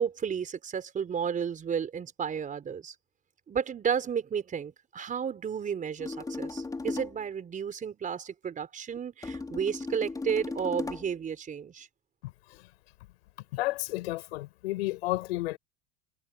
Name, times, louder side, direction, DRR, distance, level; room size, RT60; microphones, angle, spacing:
voice 1, 0.0-2.9 3.5-11.9, right 7 dB, 25° right, 4.8 m, -32 dB
sound 1, 6.0-7.2 9.2-11.2, left 3 dB, 10° left, 3.9 m, -36 dB
voice 2, 12.2-12.7 13.5-15.6, left 19 dB, 85° left, 5.1 m, -32 dB
supercardioid pair, 130°, 31 cm